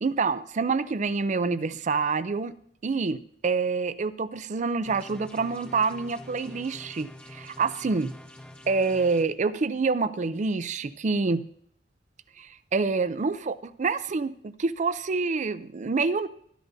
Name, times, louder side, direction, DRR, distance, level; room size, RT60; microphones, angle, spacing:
voice 1, 0.0-2.5 2.8-8.1 8.7-11.4 12.4-16.3, right 4 dB, 40° right, 13 dB, 0.5 m, -27 dB
sound 1, 4.9-9.2, left 1 dB, 5° left, 0.8 m, -46 dB
12.0 x 12.0 x 2.7 m, 0.64 s
head